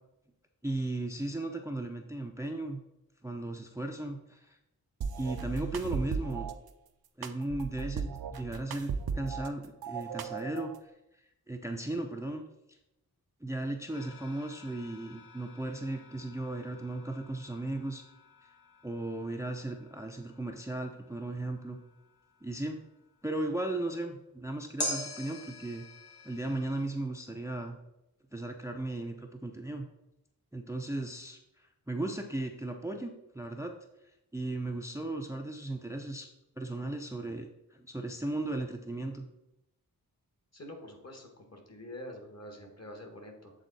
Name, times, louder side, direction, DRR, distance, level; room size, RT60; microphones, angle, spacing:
voice 1, 0.6-2.8 3.2-4.6 5.2-6.5 7.2-10.9 11.5-12.4 13.4-18.0 18.8-21.8 22.4-22.8 23.2-25.9 26.2-27.8 28.3-29.9 30.5-33.7 34.3-36.3 36.6-39.3, right 2 dB, 10° right, 3 dB, 0.5 m, -36 dB
sound 1, 5.0-6.5 7.2-9.5 9.8-10.8, right 6 dB, 70° right, 0.6 m, -36 dB
sound 2, 13.9-23.3 24.8-26.9, left 1 dB, 85° left, 1.9 m, -45 dB
voice 2, 40.5-43.5, left 1 dB, 40° left, 3 dB, 1.5 m, -46 dB
8.1 x 3.7 x 4.0 m, 0.88 s
wide cardioid pair, 80°, 38 cm